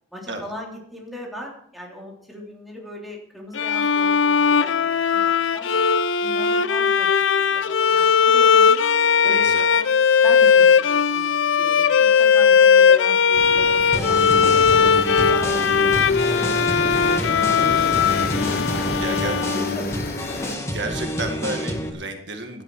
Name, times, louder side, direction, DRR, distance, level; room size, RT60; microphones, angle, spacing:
voice 1, 0.1-5.8 6.2-8.8 9.2-14.5 14.8-18.0 18.8-20.5, left 1 dB, ahead, -2 dB, 3.5 m, -38 dB
Bowed string instrument, 3.5-20.1, left 6 dB, 80° left, 0.7 m, -18 dB
voice 2, 9.2-9.7 17.2-17.5 19.0-19.4 20.7-22.6, right 2 dB, 65° right, 4 dB, 1.9 m, -32 dB
sound 1, 13.3-20.6, left 3 dB, 50° left, 1.1 m, -32 dB
sound 2, 13.9-21.9, equal, 15° left, 2.3 m, -29 dB
17.0 x 11.5 x 4.8 m, 0.66 s
head